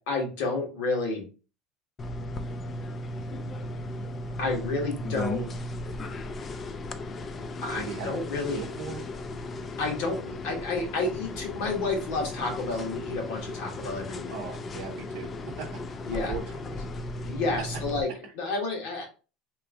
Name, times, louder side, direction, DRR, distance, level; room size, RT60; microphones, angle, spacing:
voice 1, 0.1-1.2 4.4-5.5 7.6-8.7 9.8-14.3 16.0-16.3 17.2-19.0, left 3 dB, 75° left, 1 dB, 1.4 m, -30 dB
sound 1, 2.0-18.0, left 2 dB, 30° left, 0.3 m, -36 dB
voice 2, 7.7-8.2 8.5-9.0 14.3-15.3 15.6-15.8 16.1-16.8, right 5 dB, 80° right, -1 dB, 0.6 m, -38 dB
3.0 x 2.5 x 3.6 m, 0.35 s
supercardioid pair, 120°, 0 cm